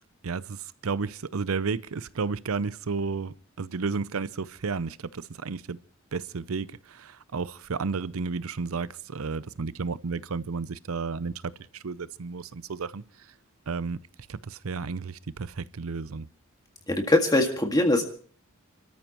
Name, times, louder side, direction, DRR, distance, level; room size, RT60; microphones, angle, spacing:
voice 1, 0.2-5.8 6.1-11.3 11.7-13.0 13.7-14.0 14.3-16.3, right 4 dB, 90° right, 0.6 m, -32 dB
voice 2, 16.9-18.0, left 1 dB, 20° left, 1.9 m, -22 dB
30.0 x 13.5 x 3.0 m
head